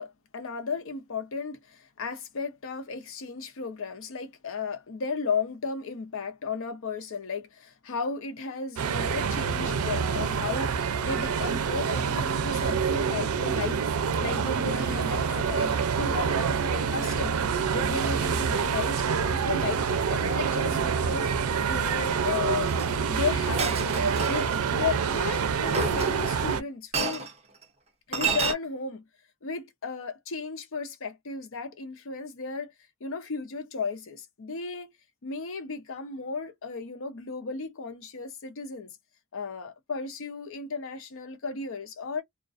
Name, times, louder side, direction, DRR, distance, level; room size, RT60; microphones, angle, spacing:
voice 1, 0.0-17.4 17.7-21.3 21.7-22.8 23.0-23.9 24.2-27.3 28.1-29.0 29.4-32.7 33.0-34.9 35.2-38.9 39.3-42.2, left 4 dB, 65° left, 0.6 m, -34 dB
sound 1, 8.8-26.6, right 6 dB, 90° right, 0.5 m, -27 dB
Chink clink, 22.7-22.9 23.6-24.6 25.7-26.4 26.9-27.3 28.1-28.5, right 4 dB, 30° right, 0.7 m, -29 dB
2.4 x 2.2 x 2.4 m
head